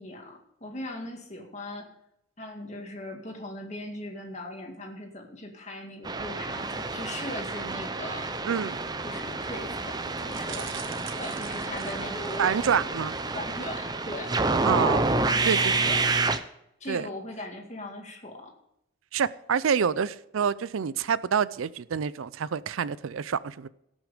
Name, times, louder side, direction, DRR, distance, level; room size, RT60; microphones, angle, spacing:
voice 1, 0.0-1.9 2.4-8.3 9.0-12.9 13.3-14.4 15.1-16.1 16.8-18.5, left 1 dB, 35° left, 2 dB, 2.0 m, -39 dB
sound 1, 6.0-16.4, right 3 dB, 20° right, 0.6 m, -29 dB
voice 2, 8.4-8.8 12.4-13.1 14.6-15.0 15.5-15.7 16.9-17.1 19.1-23.7, right 7 dB, 90° right, 18 dB, 0.5 m, -27 dB
sound 2, 8.7-13.7, equal, 10° left, 1.5 m, -44 dB
sound 3, 10.3-12.6 13.1-13.4 13.6-13.7, right 8 dB, 75° right, 1.2 m, -44 dB
18.0 x 6.3 x 5.0 m, 0.81 s
head